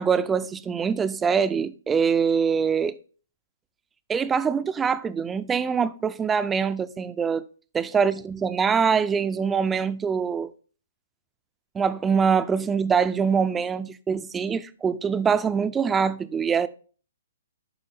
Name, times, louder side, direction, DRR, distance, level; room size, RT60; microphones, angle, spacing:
voice 1, 0.0-2.9 4.1-7.4 7.7-10.5 11.7-16.7, right 6 dB, 15° right, 0.4 m, -24 dB
10.5 x 3.8 x 3.3 m
figure-of-eight pair, 125°, 0 cm